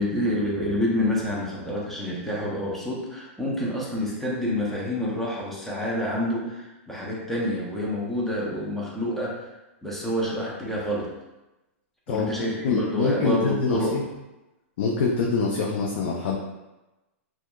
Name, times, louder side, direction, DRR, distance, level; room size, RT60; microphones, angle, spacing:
voice 1, 0.0-9.5 9.8-11.1 12.1-14.0, left 1 dB, 5° left, -5 dB, 0.6 m, -28 dB
voice 2, 12.6-14.0 14.8-16.4, left 4 dB, 65° left, -2 dB, 0.4 m, -24 dB
2.6 x 2.3 x 2.2 m, 1.0 s
hypercardioid pair, 135°, 7 cm